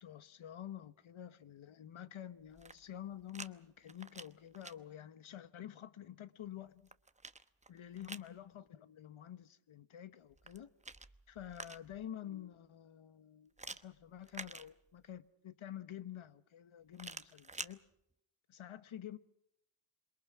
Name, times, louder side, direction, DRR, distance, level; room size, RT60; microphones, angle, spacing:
voice 1, 0.0-6.9 7.7-10.7 11.3-17.8 18.5-19.2, left 11 dB, 80° left, 1.2 m, -49 dB
sound 1, 2.4-3.5 3.8-4.7 6.5-8.3 10.3-12.1 13.6-15.2 16.9-17.7, right 3 dB, 15° right, 0.8 m, -49 dB
27.5 x 22.5 x 6.1 m
wide cardioid pair, 100°, 47 cm